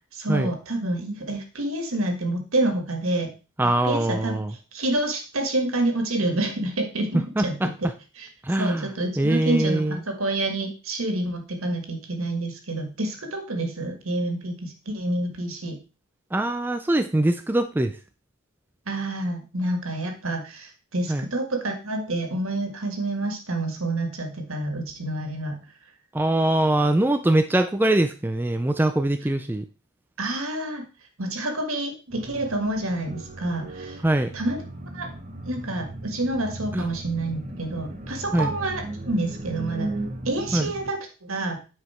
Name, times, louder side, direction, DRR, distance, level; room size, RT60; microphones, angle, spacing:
voice 1, 0.1-3.3 3.8-4.4 4.7-7.7 8.2-8.3 8.6-15.8 18.9-25.6 30.2-30.8 31.2-34.0 34.3-34.6 34.9-35.1 35.4-39.9 40.3-41.6, right 2 dB, 70° right, 5 dB, 1.8 m, -28 dB
voice 2, 3.6-4.5 7.1-7.9 8.4-10.0 16.3-18.0 21.1-21.3 26.1-29.7 34.0-34.3 36.7-36.8 38.3-38.5 40.5-40.7, right 1 dB, 10° right, 8 dB, 0.3 m, -23 dB
sound 1, 32.1-40.9, right 1 dB, 35° right, 0.9 m, -36 dB
9.3 x 4.9 x 4.3 m, 0.33 s
head